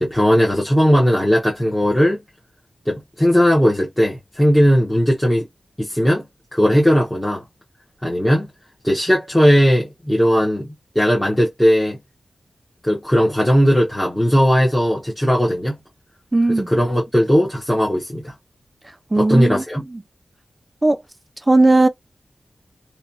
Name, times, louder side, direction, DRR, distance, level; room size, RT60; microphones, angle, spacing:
voice 1, 0.0-2.2 2.9-5.4 5.8-6.2 6.5-7.4 8.0-8.5 8.8-12.0 12.8-15.8 16.5-18.3 19.1-19.8, equal, 10° left, 0.9 m, -17 dB
voice 2, 16.3-16.7 19.1-19.6 19.9-20.0 20.8-21.0 21.5-21.9, right 2 dB, 20° right, 0.4 m, -16 dB
2.9 x 2.2 x 2.6 m
wide cardioid pair, 100°, 0 cm